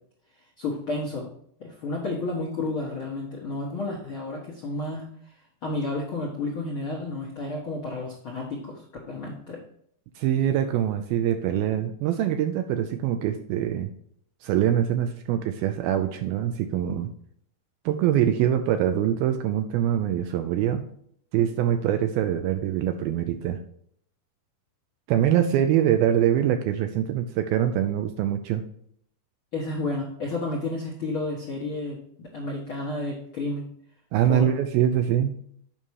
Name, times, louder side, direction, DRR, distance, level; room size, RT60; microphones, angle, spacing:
voice 1, 0.6-1.3 1.6-5.1 5.6-9.6 29.5-33.7 34.3-34.5, left 2 dB, 65° left, -2 dB, 1.3 m, -31 dB
voice 2, 10.2-13.9 14.4-17.1 17.9-20.9 21.3-23.6 25.1-28.6 34.1-35.4, right 10 dB, 80° right, 7 dB, 2.2 m, -24 dB
8.9 x 5.5 x 4.7 m, 0.66 s
omnidirectional pair, 4.8 m